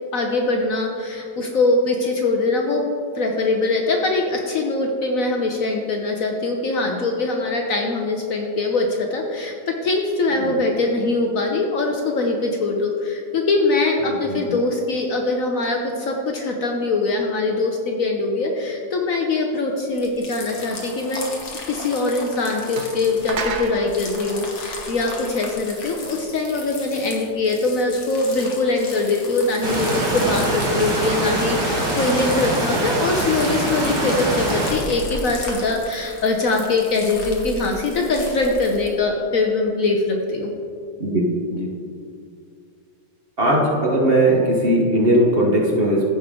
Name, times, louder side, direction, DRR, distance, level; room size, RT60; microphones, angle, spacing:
voice 1, 0.1-2.9 3.1-21.3 21.7-40.5, left 3 dB, 60° left, 2 dB, 1.0 m, -22 dB
sound 1, 19.9-38.9, left 3 dB, 80° left, 1.9 m, -36 dB
sound 2, 22.2-22.3 22.8-25.6, right 5 dB, 90° right, 0.4 m, -32 dB
sound 3, 29.6-34.7, right 1 dB, 70° right, 2.5 m, -23 dB
voice 2, 43.4-46.0, right 1 dB, 40° right, -3 dB, 1.1 m, -18 dB
14.5 x 5.4 x 3.7 m, 2.4 s
omnidirectional pair, 1.9 m